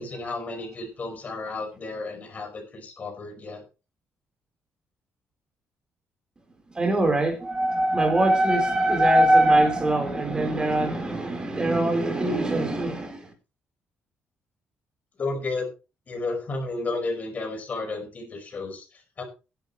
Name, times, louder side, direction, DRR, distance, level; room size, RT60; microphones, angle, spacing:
voice 1, 0.0-3.6 15.2-15.7 16.1-19.2, left 3 dB, 35° left, 5.3 m, -32 dB
voice 2, 6.7-13.3, right 1 dB, 20° right, 4.2 m, -22 dB
15.5 x 11.5 x 3.3 m
cardioid pair, 145°, 4 cm